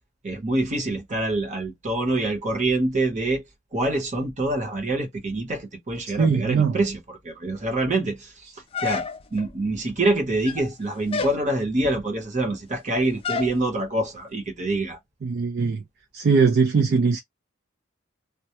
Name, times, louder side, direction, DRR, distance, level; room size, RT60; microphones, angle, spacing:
voice 1, 0.2-3.4 3.7-9.1 9.3-15.0, right 2 dB, 35° right, 0.9 m, -26 dB
voice 2, 6.1-6.8 15.2-15.8 16.1-17.2, right 5 dB, 50° right, 0.4 m, -20 dB
sound 1, 8.7-9.5 10.3-10.7 11.1-11.4 13.2-13.6, left 5 dB, 30° left, 0.3 m, -29 dB
2.2 x 2.1 x 2.8 m
head